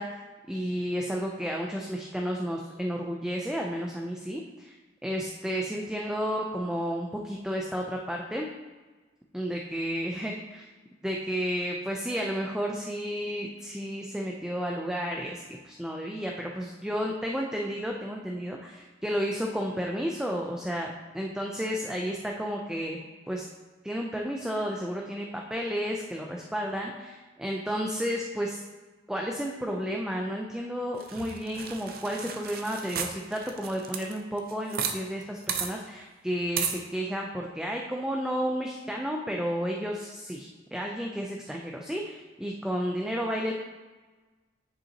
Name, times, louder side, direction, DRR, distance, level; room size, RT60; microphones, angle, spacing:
voice 1, 0.0-4.8 5.0-8.5 9.3-10.7 11.0-23.0 23.3-23.4 23.8-28.6 29.1-43.5, equal, 5° right, 0 dB, 0.4 m, -32 dB
sound 1, 31.0-35.0 35.2-35.3 35.5-35.7 36.6-36.8, right 7 dB, 55° right, 0.6 m, -33 dB
10.0 x 5.4 x 2.9 m, 1.3 s
head